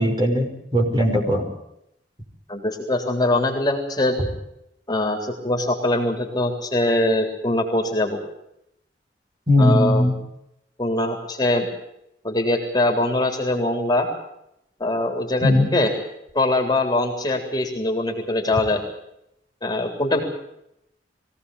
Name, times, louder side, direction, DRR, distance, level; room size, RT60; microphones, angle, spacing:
voice 1, 0.0-1.4 9.5-10.1 15.4-15.7, left 1 dB, 25° right, 2 dB, 5.8 m, -19 dB
voice 2, 2.5-4.2 4.9-8.2 9.6-10.0 10.8-11.7 12.2-14.1 14.8-15.9 16.3-18.8 19.6-20.2, left 2 dB, 20° left, 3 dB, 3.7 m, -22 dB
23.0 x 17.5 x 8.5 m, 0.80 s
head